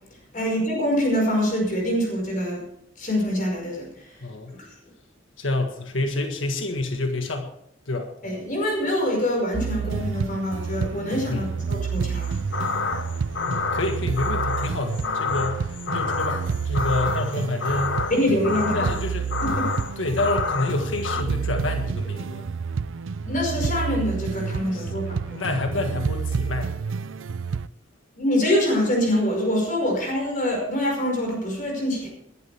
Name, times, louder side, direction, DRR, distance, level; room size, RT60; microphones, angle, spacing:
voice 1, 0.3-2.6 3.0-4.2 4.5-4.7 8.2-12.4 18.1-18.9 19.4-19.7 23.2-25.4 28.2-32.1, left 1 dB, 45° left, 0 dB, 5.5 m, -25 dB
voice 2, 4.2-4.6 5.4-7.6 7.8-8.1 11.3-11.6 13.5-18.0 18.5-19.3 20.0-22.4 24.7-25.1 25.4-26.8, left 2 dB, 85° left, 4 dB, 1.7 m, -28 dB
sound 1, 9.5-27.7, right 5 dB, 85° right, 0.5 m, -29 dB
sound 2, 12.2-21.2, left 4 dB, 65° left, 0.9 m, -29 dB
20.5 x 12.0 x 3.5 m, 0.73 s
head